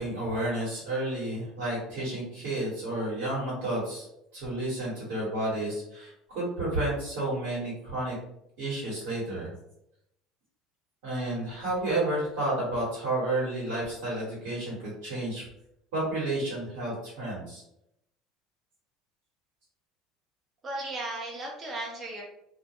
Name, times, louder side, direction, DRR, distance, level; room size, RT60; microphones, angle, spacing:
voice 1, 0.0-4.1 4.3-8.2 8.6-9.5 11.0-15.4 15.9-17.6, right 1 dB, 75° right, -7 dB, 1.2 m, -31 dB
voice 2, 20.6-22.2, right 2 dB, 35° right, -1 dB, 0.6 m, -35 dB
2.2 x 2.2 x 2.8 m, 0.80 s
supercardioid pair, 90°, 0 cm